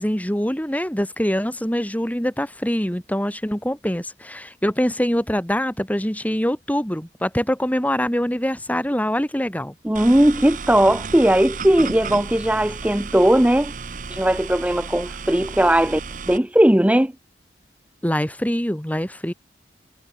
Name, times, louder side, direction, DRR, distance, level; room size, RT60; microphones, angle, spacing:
voice 1, 0.0-9.7 18.0-19.3, equal, 10° left, 3.1 m, -24 dB
voice 2, 9.8-13.7 14.1-16.0 16.3-17.1, right 1 dB, 10° right, 0.6 m, -18 dB
sound 1, 9.9-16.4, right 4 dB, 50° right, 1.2 m, -33 dB
head